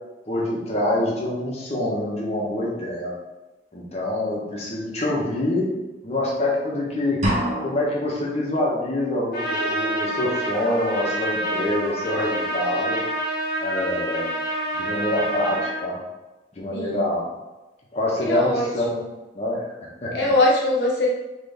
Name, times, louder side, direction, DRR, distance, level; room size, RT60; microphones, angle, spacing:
voice 1, 0.3-3.1 3.7-5.7 6.0-7.2 7.6-13.0 13.6-14.3 14.7-16.0 16.5-17.3 17.9-18.9 19.3-19.6 20.0-20.1, left 1 dB, 40° left, -4 dB, 1.2 m, -25 dB
sound 1, 7.2-8.2, equal, 40° right, 1.0 m, -25 dB
Trumpet, 9.3-15.8, right 1 dB, 55° left, 1.3 m, -27 dB
voice 2, 16.7-17.1 18.2-19.1 20.1-21.1, left 1 dB, 70° left, -3 dB, 0.6 m, -22 dB
4.0 x 3.3 x 3.4 m, 1.1 s
head